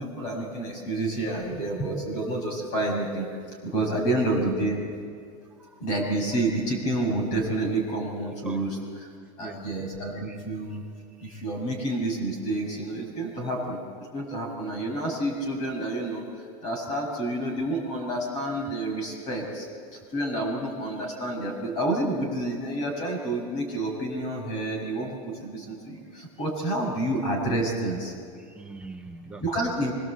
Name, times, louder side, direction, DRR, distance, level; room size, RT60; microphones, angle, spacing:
voice 1, 0.0-3.3 3.6-4.8 5.8-9.1 9.4-10.8 11.2-13.8 14.1-16.2 16.6-19.7 19.9-28.1 29.4-29.9, right 1 dB, 40° left, 1 dB, 6.9 m, -29 dB
voice 2, 8.3-8.6 9.4-9.7 10.2-10.4 10.7-10.8 11.2-11.5 26.1-26.2 28.4-29.7, right 4 dB, 5° right, 1 dB, 0.6 m, -43 dB
25.0 x 23.5 x 8.2 m, 2.1 s
supercardioid pair, 180°, 18 cm